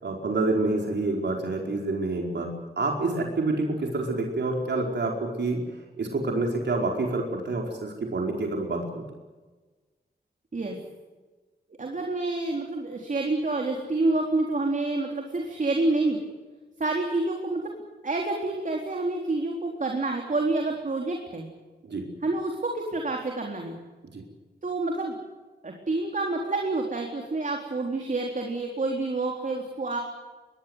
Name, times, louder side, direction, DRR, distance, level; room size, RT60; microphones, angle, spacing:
voice 1, 0.0-2.5 2.8-5.6 6.0-9.0 21.8-22.1 24.1-24.3, right 2 dB, 75° right, 1 dB, 4.9 m, -27 dB
voice 2, 11.8-16.2 16.8-17.7 18.0-21.5 22.2-23.7 24.6-25.2 25.6-30.0, right 2 dB, 45° right, 1 dB, 3.9 m, -28 dB
25.0 x 20.0 x 8.1 m, 1.3 s
wide cardioid pair, 130°, 18 cm